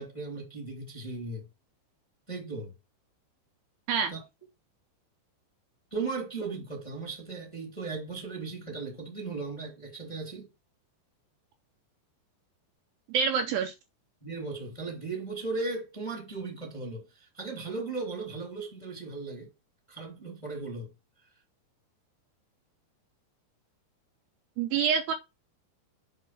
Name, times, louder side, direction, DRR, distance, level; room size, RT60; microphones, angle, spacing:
voice 1, 0.0-1.5 2.3-2.7 4.1-4.2 5.9-10.5 14.2-19.5 19.9-20.9, right 3 dB, 10° left, 2.0 m, -37 dB
voice 2, 13.1-13.7 24.6-25.1, right 6 dB, 80° right, 2.5 m, -26 dB
8.2 x 3.7 x 5.7 m
omnidirectional pair, 5.1 m